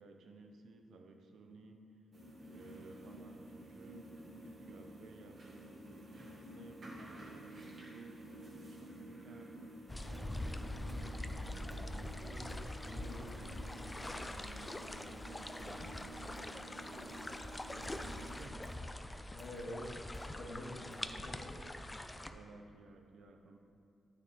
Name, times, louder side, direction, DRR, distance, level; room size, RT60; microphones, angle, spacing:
voice 1, 0.0-2.0 2.4-4.2 4.4-8.3 8.6-9.6 10.0-12.6 13.1-13.7 14.1-17.1 17.8-18.7 20.7-21.8 22.3-23.6, right 3 dB, 80° right, 4 dB, 0.7 m, -57 dB
sound 1, 2.1-18.5, right 1 dB, 55° right, 1.5 m, -52 dB
sound 2, 9.9-22.3, left 1 dB, 15° left, 0.3 m, -44 dB
sound 3, 10.1-10.4 10.9-11.4 11.7-12.8 13.3-13.8 14.0-14.5 14.8-21.4, right 1 dB, 5° right, 0.9 m, -59 dB
voice 2, 12.9-13.2 19.3-19.9 20.2-21.5, left 1 dB, 50° left, -4 dB, 1.8 m, -47 dB
9.0 x 6.4 x 3.3 m, 2.4 s
cardioid pair, 115°, 0 cm